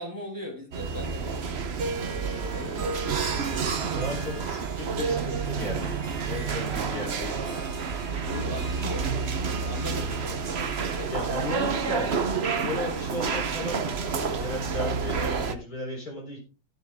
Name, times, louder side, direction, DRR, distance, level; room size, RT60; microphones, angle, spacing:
voice 1, 0.0-3.0 8.1-11.3, left 1 dB, 10° right, -1 dB, 5.2 m, -39 dB
sound 1, 0.7-15.5, right 5 dB, 45° right, 1.0 m, -29 dB
Harp, 1.7-13.0, right 4 dB, 65° right, 2.6 m, -40 dB
voice 2, 3.9-7.7 11.1-12.1 12.6-16.4, left 1 dB, 45° left, -1 dB, 4.9 m, -35 dB
15.5 x 7.7 x 3.7 m, 0.34 s
omnidirectional pair, 2.2 m